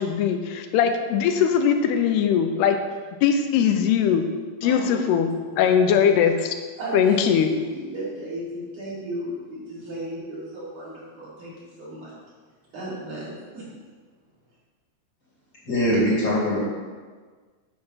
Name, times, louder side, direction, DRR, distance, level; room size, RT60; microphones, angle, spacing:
voice 1, 0.0-2.8 3.2-4.2 4.6-5.3 5.6-6.5 6.9-7.5, left 8 dB, 85° left, 6 dB, 2.8 m, -20 dB
voice 2, 4.6-5.6 5.9-6.0 6.8-12.1 12.7-13.7, right 1 dB, 50° right, -10 dB, 3.8 m, -34 dB
voice 3, 15.7-16.6, equal, 30° left, -6 dB, 2.4 m, -21 dB
9.2 x 6.8 x 5.6 m, 1.5 s
omnidirectional pair, 4.7 m